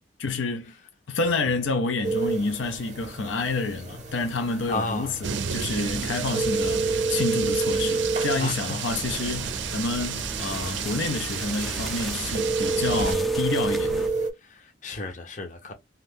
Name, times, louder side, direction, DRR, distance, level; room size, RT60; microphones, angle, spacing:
voice 1, 0.2-0.7 1.1-14.1, left 3 dB, 85° left, 0.6 m, -29 dB
sound 1, 2.0-14.3, right 3 dB, 40° right, 0.8 m, -30 dB
voice 2, 4.7-5.1 8.3-8.6 14.4-15.7, left 2 dB, 40° left, 0.7 m, -32 dB
sound 2, 5.2-13.2, right 7 dB, 75° right, 0.5 m, -32 dB
sound 3, 8.9-14.1, equal, ahead, 0.4 m, -37 dB
2.6 x 2.3 x 3.4 m
head